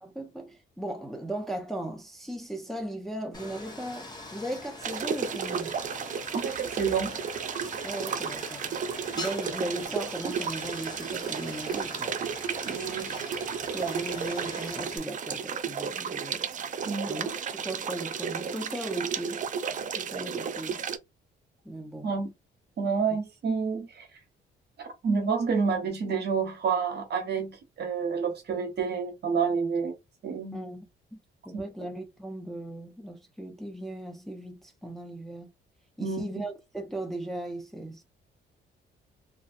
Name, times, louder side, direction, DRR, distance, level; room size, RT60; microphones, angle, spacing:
voice 1, 0.0-5.7 7.8-8.7 9.1-12.2 13.6-16.5 17.1-19.5 19.9-20.8 21.6-22.1 30.5-30.8 31.1-35.5 36.0-38.0, right 1 dB, ahead, 0.6 m, -37 dB
Stream, 3.3-15.0, left 2 dB, 20° left, 1.0 m, -43 dB
sound 1, 4.8-21.0, right 7 dB, 40° right, 0.4 m, -33 dB
voice 2, 6.3-7.2 12.6-13.3 16.8-17.1 22.0-22.3 22.8-24.1 24.8-29.9 30.2-30.6 36.0-36.3, right 5 dB, 55° right, 0.9 m, -29 dB
2.4 x 2.2 x 2.5 m
cardioid pair, 90°, 20 cm